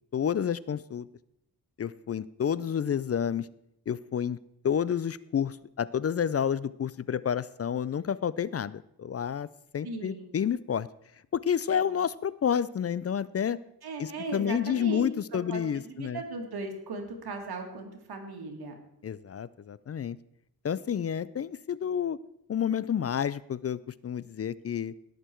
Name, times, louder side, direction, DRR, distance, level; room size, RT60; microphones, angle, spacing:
voice 1, 0.1-1.1 1.8-3.5 3.9-4.4 4.6-9.5 9.7-10.9 11.3-13.6 14.0-16.2 19.0-20.2 20.6-22.2 22.5-24.9, left 8 dB, 40° left, 19 dB, 0.4 m, -29 dB
voice 2, 9.8-10.3 13.8-15.1 15.5-18.7, right 3 dB, 80° right, 4 dB, 2.2 m, -37 dB
18.0 x 6.7 x 4.5 m, 0.79 s
cardioid pair, 80°, 37 cm